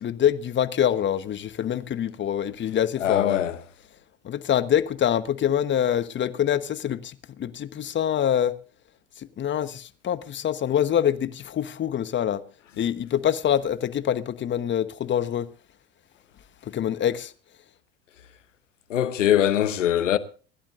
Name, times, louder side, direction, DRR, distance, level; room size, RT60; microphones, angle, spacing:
voice 1, 0.0-3.4 4.2-8.6 9.4-12.4 12.8-15.5 16.7-17.3, left 10 dB, 30° left, 1.1 m, -25 dB
voice 2, 3.0-3.6 18.9-20.2, left 11 dB, 90° left, 0.9 m, -22 dB
26.0 x 11.5 x 2.5 m
hypercardioid pair, 80°, 36 cm